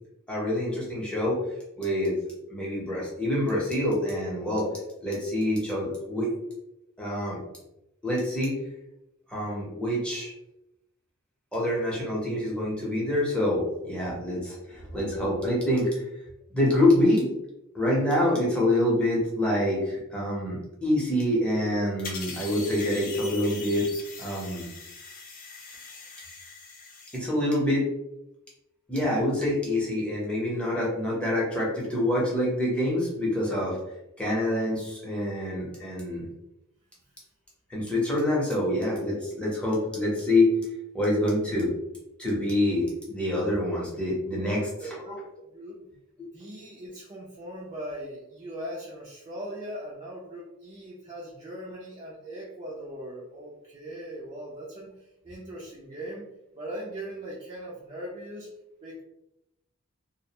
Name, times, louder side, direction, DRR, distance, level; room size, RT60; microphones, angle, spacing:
voice 1, 0.3-1.4 1.8-2.2 2.5-4.7 5.0-6.3 7.0-7.4 8.0-8.6 9.3-10.3 11.5-16.0 16.5-17.3 17.7-24.7 27.1-27.9 28.9-33.8 34.2-36.3 37.7-40.6 40.9-41.7 42.2-45.2, left 1 dB, 5° left, -5 dB, 0.8 m, -26 dB
sound 1, 22.0-27.2, left 4 dB, 40° left, 0.5 m, -41 dB
voice 2, 44.3-45.2 45.5-45.8 46.3-54.9 55.2-56.3 56.6-58.5 58.8-59.0, right 1 dB, 25° right, -6 dB, 0.4 m, -39 dB
2.4 x 2.1 x 2.8 m, 0.89 s
head